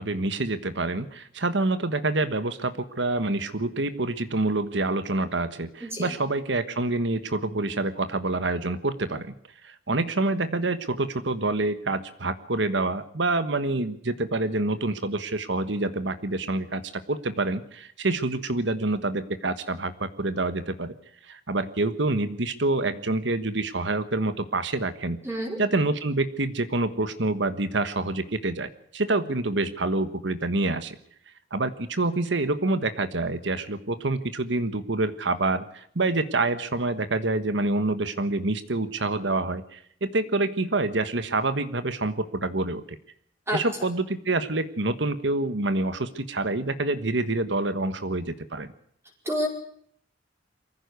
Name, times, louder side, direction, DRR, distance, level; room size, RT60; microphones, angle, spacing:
voice 1, 0.0-9.3 9.6-16.8 17.1-20.9 21.2-25.2 25.6-31.0 31.5-42.8 43.5-48.7, right 2 dB, 70° right, 11 dB, 1.4 m, -27 dB
voice 2, 5.8-6.1 25.2-25.6 43.5-43.6 49.2-49.5, equal, 15° right, 0 dB, 4.9 m, -28 dB
23.5 x 15.5 x 8.2 m, 0.65 s
head